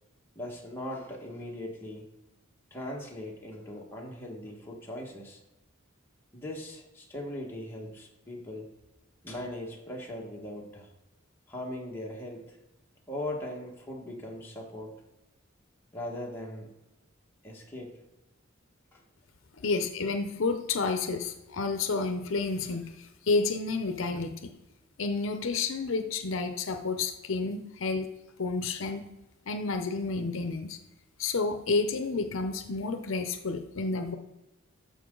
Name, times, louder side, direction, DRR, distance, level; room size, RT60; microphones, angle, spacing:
voice 1, 0.3-2.1 2.7-5.4 6.3-8.7 9.2-10.9 11.5-12.6 13.1-14.9 15.9-16.7 17.4-18.0 18.9-19.0, left 1 dB, 10° left, -3 dB, 1.6 m, -39 dB
voice 2, 19.6-24.5 25.0-28.1 28.4-29.0 29.5-30.8 31.2-34.1, left 4 dB, 70° left, 7 dB, 0.7 m, -30 dB
13.0 x 5.1 x 3.8 m, 0.98 s
head